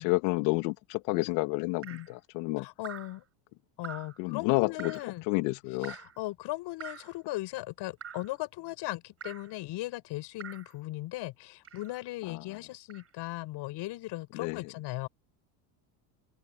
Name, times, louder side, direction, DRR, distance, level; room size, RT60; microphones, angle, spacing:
voice 1, 0.0-2.7 4.2-4.9 5.3-6.0 12.3-12.4 14.3-14.7, left 24 dB, 80° left, 2.6 m, -30 dB
Drip, 1.8-2.2 2.8-3.2 3.8-4.2 4.8-5.1 5.8-6.2 6.8-7.2 8.0-8.3 9.2-9.5 10.4-10.7 11.6-12.0 12.9-13.1, right 8 dB, 30° right, 4.8 m, -45 dB
voice 2, 2.6-3.2 3.8-5.2 5.8-15.1, left 18 dB, 55° left, 7.5 m, -38 dB
open air
cardioid pair, 140°, 49 cm